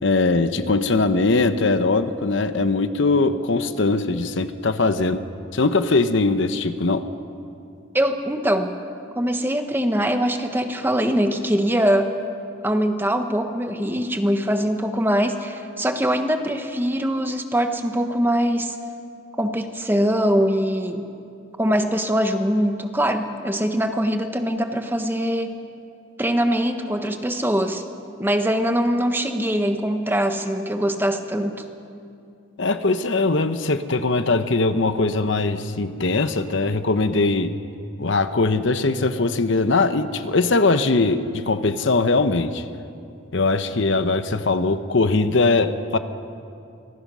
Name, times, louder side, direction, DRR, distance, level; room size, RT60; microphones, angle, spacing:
voice 1, 0.0-5.2 5.5-7.1 32.6-37.5 38.0-42.6 43.3-46.0, left 3 dB, 65° left, 10 dB, 0.9 m, -21 dB
voice 2, 7.9-8.7 9.2-12.1 12.6-18.8 19.4-21.0 21.6-25.5 26.2-27.8 28.2-31.6, equal, 10° right, 6 dB, 1.1 m, -22 dB
25.5 x 20.0 x 6.3 m, 2.5 s
head